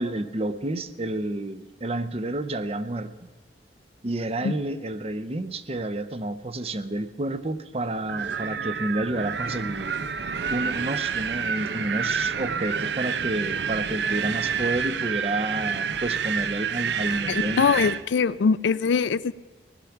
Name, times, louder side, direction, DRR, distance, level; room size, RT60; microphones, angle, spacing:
voice 1, 0.0-3.3 4.0-10.0 10.5-17.6, right 2 dB, 35° right, 12 dB, 0.6 m, -30 dB
Wind, 8.1-18.0, right 6 dB, 75° right, 0.6 m, -28 dB
voice 2, 17.3-19.3, left 5 dB, 85° left, 17 dB, 0.4 m, -22 dB
17.0 x 11.5 x 5.8 m, 1.3 s
head